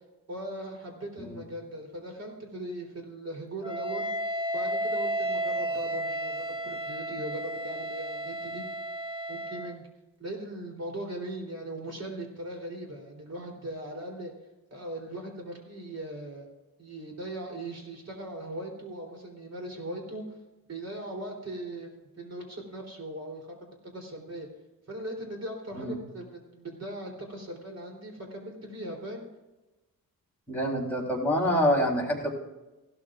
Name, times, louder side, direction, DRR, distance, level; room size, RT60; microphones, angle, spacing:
voice 1, 0.3-4.1 4.5-8.6 9.3-9.9 10.2-14.3 14.7-16.5 16.8-20.2 20.7-21.9 22.2-23.5 23.9-24.5 24.9-29.3, right 1 dB, 45° right, 2 dB, 3.6 m, -39 dB
Wind instrument woodwind instrument, 3.6-9.8, right 1 dB, 15° right, 0.7 m, -32 dB
voice 2, 30.5-32.3, equal, 5° left, -3 dB, 3.7 m, -26 dB
16.5 x 12.5 x 2.5 m, 1.1 s
cardioid pair, 105°, 36 cm